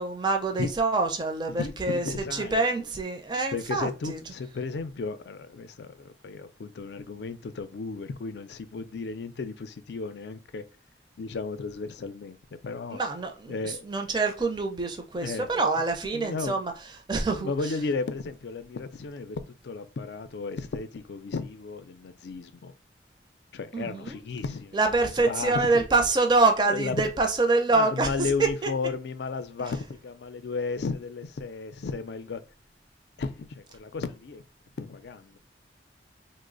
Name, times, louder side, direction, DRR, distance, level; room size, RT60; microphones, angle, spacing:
voice 1, 0.0-2.1 2.3-4.2 12.9-16.7 17.1-17.7 23.7-24.2 24.7-28.7, right 3 dB, 25° right, 0.4 m, -26 dB
voice 2, 1.5-2.9 3.5-10.6 11.2-12.4 12.6-13.0 13.5-13.9 15.2-15.5 16.1-16.6 17.4-22.7 23.5-26.1 26.6-27.1 27.7-32.4 33.2-34.4 34.8-35.4, left 4 dB, 75° left, 0.4 m, -34 dB
3.0 x 2.0 x 3.7 m
head